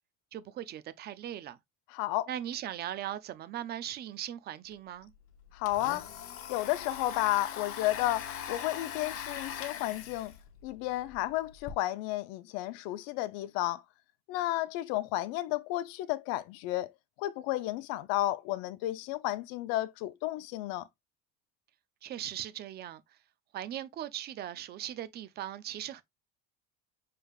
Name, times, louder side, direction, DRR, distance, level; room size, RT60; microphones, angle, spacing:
voice 1, 0.3-1.6 2.3-5.1 22.0-23.2 23.5-26.0, right 11 dB, 30° right, 0.4 m, -39 dB
voice 2, 1.9-2.3 5.5-6.1 6.5-10.4 10.6-13.8 14.3-16.9 17.2-20.9, left 16 dB, 80° left, 0.7 m, -32 dB
Domestic sounds home sounds, 4.7-4.8 5.1-11.7, left 9 dB, 40° left, 0.8 m, -41 dB
6.4 x 3.3 x 2.3 m
cardioid pair, 165°, 34 cm